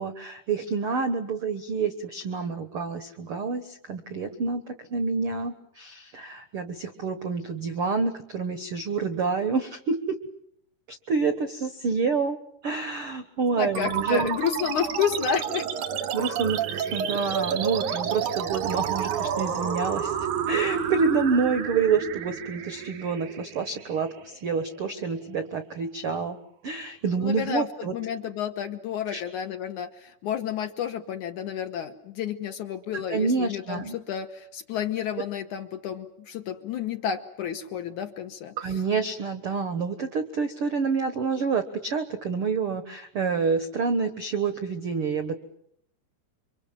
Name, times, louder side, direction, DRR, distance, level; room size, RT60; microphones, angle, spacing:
voice 1, 0.0-10.2 10.9-12.4 12.6-14.4 16.1-20.2 20.5-26.4 26.6-27.9 29.1-29.2 32.9-33.9 38.6-45.4, right 5 dB, 80° right, 10 dB, 1.2 m, -28 dB
voice 2, 13.6-15.7 27.2-27.7 27.9-38.6, left 8 dB, 65° left, 7 dB, 2.2 m, -30 dB
sound 1, 13.7-24.7, right 8 dB, 60° right, 2.6 m, -30 dB
28.0 x 25.0 x 7.4 m, 0.71 s
omnidirectional pair, 4.7 m